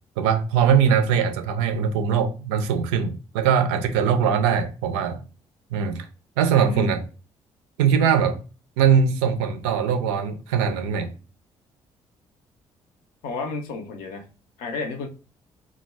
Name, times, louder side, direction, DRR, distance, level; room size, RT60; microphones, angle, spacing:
voice 1, 0.2-5.2 5.7-6.1 6.4-7.0 7.8-8.4 8.8-11.1, right 7 dB, 75° right, 0.4 m, -21 dB
voice 2, 6.5-7.0 13.2-14.3 14.6-15.1, left 3 dB, 70° left, 0.5 m, -32 dB
2.2 x 2.0 x 3.2 m
figure-of-eight pair, 40°, 15 cm